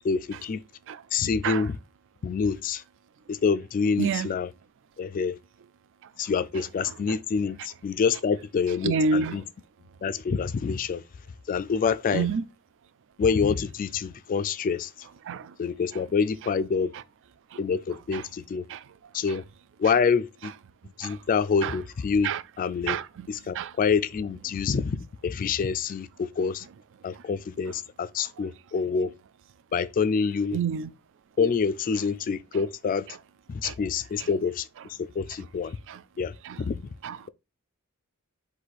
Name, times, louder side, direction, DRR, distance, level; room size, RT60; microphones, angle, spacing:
voice 1, 0.0-0.6 1.1-1.7 2.2-2.8 3.3-4.5 5.0-5.4 6.2-9.4 10.0-11.0 11.5-12.3 13.2-14.9 15.6-16.9 17.6-18.6 19.1-19.4 19.8-20.5 21.0-22.3 22.6-23.0 23.3-26.6 27.0-29.1 29.7-30.6 31.4-33.1 33.5-34.7 35.0-35.8 36.2-36.3 36.6-36.8, left 5 dB, 40° left, 0.3 m, -26 dB
voice 2, 6.8-7.2 8.8-9.4 12.1-12.4 15.3-15.5 17.5-17.6 18.1-18.2 18.7-18.8 19.3-19.4 21.0-21.2 21.6-21.8 22.2-22.4 22.8-23.3 23.5-23.7 27.1-27.2 30.5-30.9 33.1-33.2 33.6-33.8 34.2-34.3 35.9-36.0 36.4-36.6 37.0-37.2, right 5 dB, 60° right, 0.4 m, -29 dB
4.0 x 2.6 x 4.6 m
head